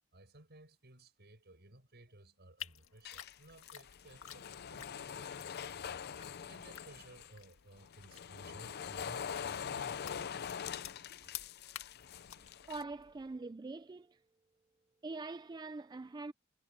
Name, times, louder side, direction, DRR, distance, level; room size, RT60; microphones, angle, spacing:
voice 1, 0.1-6.0 6.5-10.1, right 1 dB, 55° right, 6.9 m, -57 dB
sound 1, 2.6-13.4, left 11 dB, 85° left, 1.9 m, -53 dB
sound 2, 3.0-7.3 7.8-12.8, left 7 dB, 50° left, 0.5 m, -44 dB
voice 2, 12.7-14.2 15.0-16.3, right 3 dB, 20° right, 0.3 m, -43 dB
head